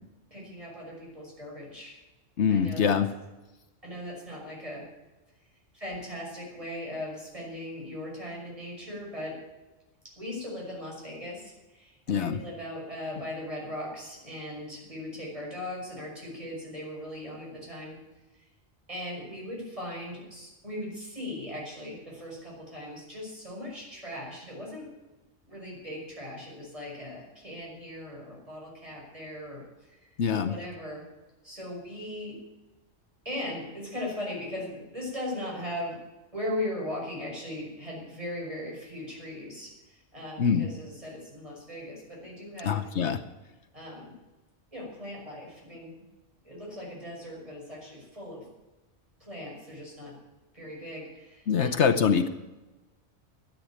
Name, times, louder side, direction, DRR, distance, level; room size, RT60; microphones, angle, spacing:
voice 1, 0.3-2.0 2.5-3.0 3.8-4.9 5.7-9.4 10.2-18.0 18.9-24.9 25.5-29.6 29.9-30.1 30.4-31.1 31.4-32.4 33.2-36.0 36.3-42.9 43.7-44.1 44.7-45.9 46.4-48.4 49.2-50.2 50.5-51.8, left 1 dB, 30° right, -3 dB, 6.2 m, -38 dB
voice 2, 2.4-3.1 12.1-12.4 30.2-30.6 40.4-40.7 42.6-43.2 51.5-52.3, left 7 dB, 70° left, 8 dB, 1.2 m, -24 dB
13.0 x 10.0 x 8.8 m, 1.1 s
omnidirectional pair, 1.2 m